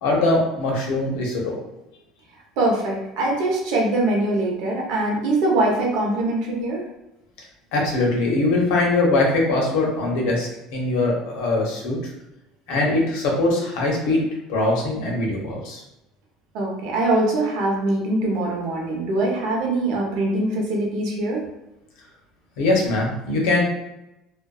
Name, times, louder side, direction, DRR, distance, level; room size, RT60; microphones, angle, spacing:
voice 1, 0.0-1.6 7.7-12.0 12.7-14.2 14.5-15.8 22.6-23.6, left 2 dB, 85° left, -1 dB, 0.8 m, -21 dB
voice 2, 2.6-6.8 16.5-21.4, right 2 dB, 75° right, -1 dB, 0.7 m, -23 dB
2.5 x 2.2 x 2.3 m, 0.92 s
cardioid pair, 130°, 0 cm